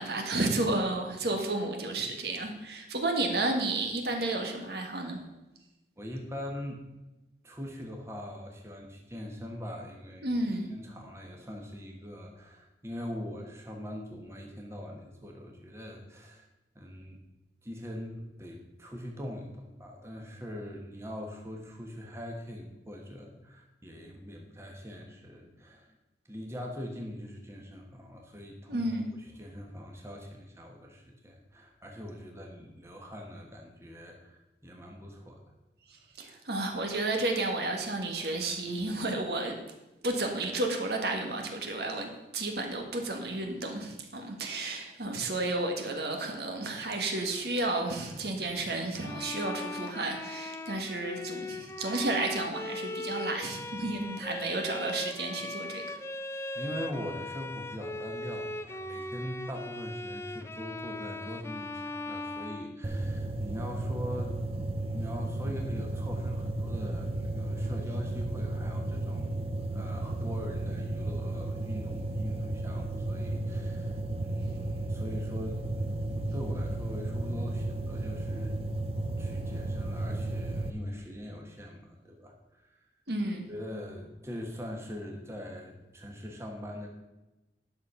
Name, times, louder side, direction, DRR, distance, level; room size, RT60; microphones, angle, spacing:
voice 1, 0.0-5.2 10.2-10.7 28.7-29.1 35.9-39.6 40.0-56.0 83.1-83.5, right 2 dB, 65° right, 3 dB, 1.5 m, -32 dB
voice 2, 6.0-6.8 7.4-10.4 10.7-16.4 16.7-17.2 17.6-26.0 26.3-28.9 29.2-35.4 56.5-64.4 64.8-69.4 69.7-78.5 79.2-82.8 83.5-86.9, equal, 15° right, 1 dB, 1.3 m, -42 dB
Bowed string instrument, 49.0-63.3, left 2 dB, 15° left, 0.4 m, -39 dB
sound 1, 62.8-80.7, right 2 dB, 35° right, 0.6 m, -33 dB
10.5 x 6.5 x 5.6 m, 1.0 s
head